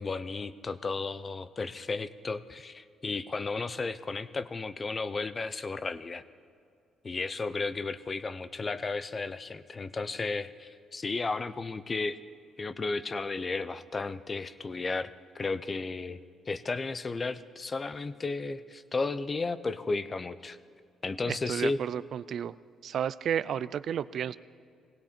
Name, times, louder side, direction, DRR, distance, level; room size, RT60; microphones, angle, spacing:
voice 1, 0.0-6.2 7.0-12.2 12.6-16.2 16.5-20.6 21.0-21.8, left 3 dB, 30° left, 14 dB, 0.6 m, -34 dB
voice 2, 21.3-22.5 22.8-24.3, right 9 dB, 65° right, 17 dB, 0.4 m, -32 dB
18.5 x 16.5 x 4.4 m, 2.3 s
cardioid pair, 85°, 0 cm